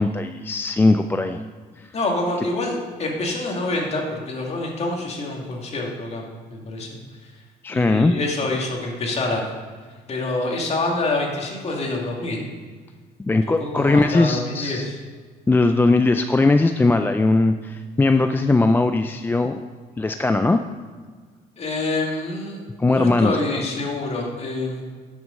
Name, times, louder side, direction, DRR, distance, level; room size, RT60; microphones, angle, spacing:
voice 1, 0.0-1.4 1.8-1.9 7.6-8.1 13.2-14.9 15.5-19.6 20.0-20.6 22.8-23.6, left 3 dB, 10° left, 7 dB, 0.3 m, -19 dB
voice 2, 1.9-6.9 7.7-9.4 10.1-12.4 13.6-15.0 21.6-22.6 22.9-24.8, left 2 dB, 40° left, 0 dB, 2.3 m, -26 dB
10.5 x 6.4 x 5.2 m, 1.5 s
cardioid pair, 110°, 17 cm